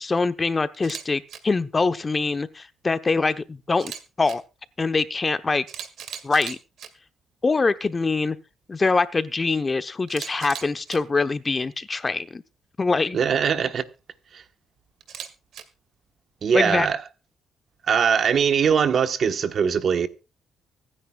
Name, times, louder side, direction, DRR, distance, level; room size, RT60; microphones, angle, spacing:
voice 1, 0.0-3.9 4.2-4.4 4.8-5.6 6.2-6.6 7.4-8.4 8.7-12.4 12.8-13.2 16.5-16.9, left 3 dB, 30° left, 0.9 m, -24 dB
Camera, 0.7-1.0 1.3-1.4 3.7-4.4 5.3-5.4 5.7-6.9 10.1-11.0 15.0-15.6, right 8 dB, 70° right, 1.9 m, -37 dB
voice 2, 13.1-13.8 14.3-14.4 16.4-17.0 17.9-20.1, right 7 dB, 55° right, 1.2 m, -21 dB
24.5 x 9.9 x 2.3 m
cardioid pair, 90°, 0 cm